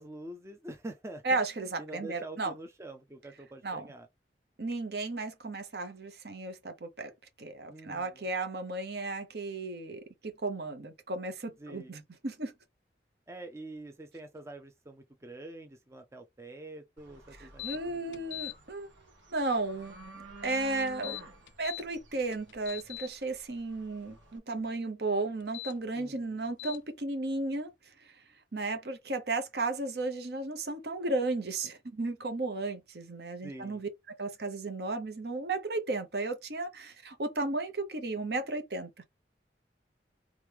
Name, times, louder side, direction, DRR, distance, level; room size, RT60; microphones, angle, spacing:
voice 1, 0.0-1.4 1.8-4.1 7.7-8.2 11.6-11.9 13.3-18.4 26.0-26.5 33.4-33.8, right 1 dB, 15° right, 0.4 m, -46 dB
voice 2, 1.2-2.5 3.6-3.9 4.6-7.1 7.4-12.5 17.4-18.9 19.3-21.2 21.6-27.7 28.5-33.9 34.2-39.0, right 2 dB, 60° right, 0.9 m, -34 dB
sound 1, 17.0-24.4, right 3 dB, 90° right, 1.7 m, -52 dB
sound 2, 17.6-17.8 18.1-18.5 20.9-21.8 22.3-23.1 25.4-25.7 26.6-26.8, left 21 dB, 85° left, 0.3 m, -40 dB
3.5 x 3.1 x 3.4 m
head